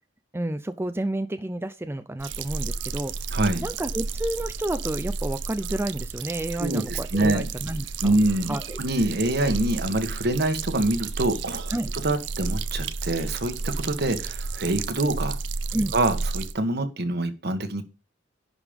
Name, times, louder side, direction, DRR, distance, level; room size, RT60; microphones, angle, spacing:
voice 1, 0.3-3.1 3.6-8.1 8.5-8.8 11.7-11.9 15.7-15.9, right 1 dB, 15° right, 9 dB, 0.5 m, -30 dB
sound 1, 2.2-16.5, right 4 dB, 80° right, 0.8 m, -32 dB
voice 2, 3.3-3.7 6.6-7.4 8.0-11.7 12.0-15.4 15.9-17.8, right 2 dB, 60° right, 8 dB, 1.7 m, -25 dB
11.0 x 5.5 x 5.2 m, 0.30 s
head